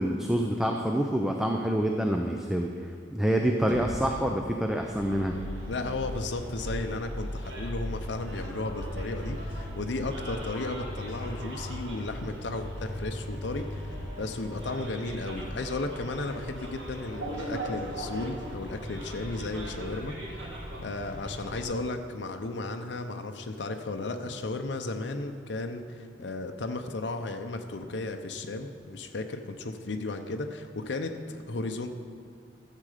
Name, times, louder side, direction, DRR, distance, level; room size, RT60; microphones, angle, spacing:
voice 1, 0.0-2.7 3.1-5.4, right 1 dB, 5° right, 2 dB, 0.5 m, -27 dB
sound 1, 3.7-7.6, equal, 25° right, 2.1 m, -43 dB
Bus, 4.9-21.6, equal, 75° right, 2.0 m, -38 dB
voice 2, 5.7-20.2 20.8-31.9, left 2 dB, 70° left, 5 dB, 0.7 m, -34 dB
13.0 x 7.5 x 5.0 m, 2.2 s
head